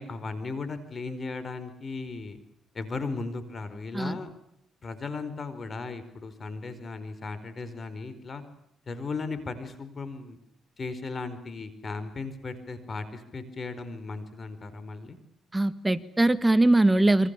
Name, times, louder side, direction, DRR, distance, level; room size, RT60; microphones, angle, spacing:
voice 1, 0.0-2.4 2.7-4.3 4.8-8.4 8.9-10.4 10.8-15.2, left 4 dB, 40° left, 12 dB, 4.9 m, -36 dB
voice 2, 15.5-17.3, right 2 dB, 10° right, 13 dB, 1.5 m, -21 dB
28.5 x 24.5 x 7.0 m, 0.77 s
cardioid pair, 90°, 0 cm